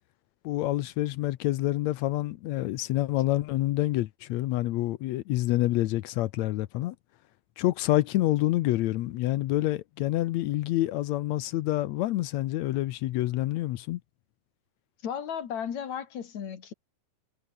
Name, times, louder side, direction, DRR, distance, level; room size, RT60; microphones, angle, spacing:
voice 1, 0.4-6.9 7.6-14.0, left 16 dB, 75° left, 1.7 m, -27 dB
voice 2, 15.0-16.7, left 8 dB, 60° left, 3.5 m, -34 dB
omnidirectional pair, 3.8 m